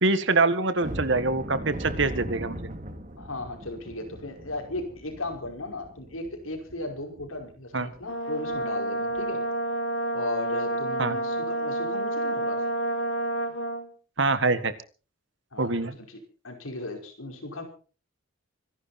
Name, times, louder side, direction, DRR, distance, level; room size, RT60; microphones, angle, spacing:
voice 1, 0.0-2.7 7.7-7.9 11.0-11.1 14.2-14.7 15.6-15.9, right 3 dB, 60° right, 13 dB, 1.8 m, -24 dB
sound 1, 0.8-7.5 7.9-8.0 8.5-8.6 9.1-9.3, right 1 dB, 40° right, 2.5 m, -39 dB
voice 2, 3.2-9.4 10.1-12.6 15.5-17.6, left 2 dB, 80° left, 4 dB, 5.4 m, -36 dB
Brass instrument, 8.0-13.9, right 1 dB, 65° left, 2.5 m, -29 dB
25.5 x 11.5 x 4.4 m, 0.37 s
head